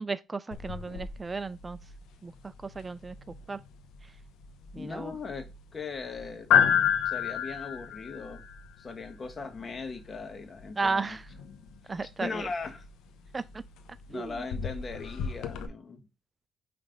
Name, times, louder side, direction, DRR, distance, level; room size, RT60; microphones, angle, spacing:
voice 1, 0.0-1.8 2.2-2.3 2.8-3.2 3.5-3.6 4.7-5.1 10.8-11.2 11.9-12.5 13.3-13.4 14.1-14.3, right 4 dB, 25° right, 0.3 m, -33 dB
sound 1, 0.5-15.7, left 9 dB, 90° left, 0.8 m, -33 dB
voice 2, 4.7-6.5 7.0-8.4 8.8-11.2 12.2-12.8 14.1-16.1, left 4 dB, 40° left, 1.4 m, -39 dB
5.8 x 3.2 x 5.1 m
cardioid pair, 90°, 0 cm